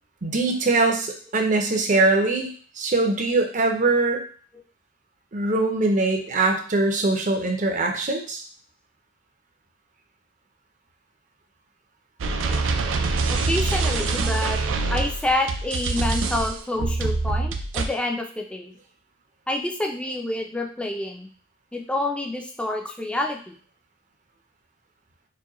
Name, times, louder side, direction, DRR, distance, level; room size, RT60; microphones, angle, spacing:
voice 1, 0.2-2.5 2.8-4.2 5.3-8.4, right 3 dB, 40° right, 3 dB, 0.6 m, -22 dB
sound 1, 12.2-17.9, right 3 dB, 85° right, 0.4 m, -25 dB
voice 2, 13.3-14.6 14.9-18.7 19.5-21.3 21.7-23.5, left 1 dB, 5° left, 2 dB, 0.4 m, -28 dB
4.6 x 2.2 x 3.0 m, 0.44 s
head